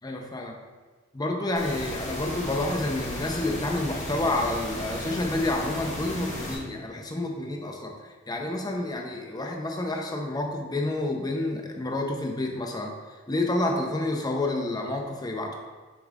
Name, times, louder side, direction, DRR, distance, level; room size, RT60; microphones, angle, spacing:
voice 1, 0.0-0.6 1.1-12.9 13.3-15.6, left 2 dB, 20° left, 1 dB, 0.7 m, -29 dB
sound 1, 1.5-6.5, equal, 35° left, 1.3 m, -35 dB
7.1 x 5.4 x 2.4 m, 1.4 s
head